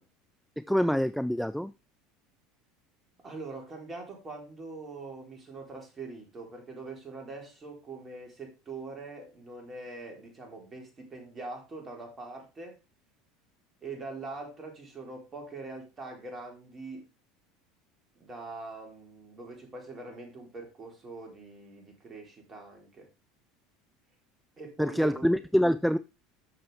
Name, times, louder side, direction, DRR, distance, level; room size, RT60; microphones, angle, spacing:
voice 1, 0.6-1.7 24.8-26.0, equal, ahead, 13 dB, 0.4 m, -26 dB
voice 2, 3.2-12.8 13.8-17.1 18.2-23.1 24.6-25.3, right 3 dB, 30° right, 2 dB, 3.9 m, -43 dB
11.0 x 6.8 x 3.5 m, 0.27 s
figure-of-eight pair, 75°, 0 cm